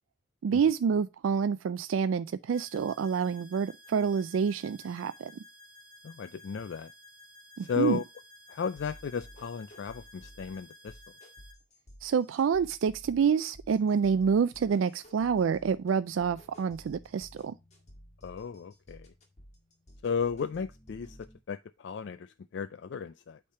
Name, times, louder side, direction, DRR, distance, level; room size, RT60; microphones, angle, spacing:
voice 1, 0.4-5.3 7.6-8.0 12.0-17.5, right 6 dB, 80° right, 0.3 m, -27 dB
sound 1, 2.5-11.5, left 1 dB, 45° right, 1.3 m, -54 dB
voice 2, 6.0-6.9 7.6-8.0 8.5-11.0 18.2-19.1 20.0-23.4, left 6 dB, 60° left, 0.4 m, -34 dB
sound 2, 8.8-21.4, equal, 35° left, 1.8 m, -54 dB
8.5 x 3.4 x 5.5 m
head